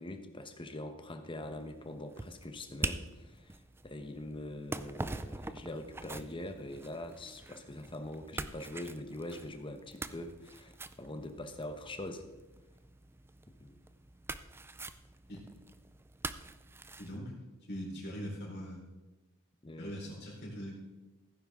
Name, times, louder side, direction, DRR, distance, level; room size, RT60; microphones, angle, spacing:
voice 1, 0.0-12.3 13.6-13.8 19.6-19.9, left 1 dB, 25° left, 7 dB, 1.0 m, -43 dB
sound 1, 1.3-17.2, right 2 dB, 10° right, 0.4 m, -45 dB
voice 2, 17.0-17.3 17.6-18.8 19.8-20.8, equal, 50° left, -3 dB, 4.2 m, -41 dB
16.0 x 9.4 x 3.7 m, 1.1 s
head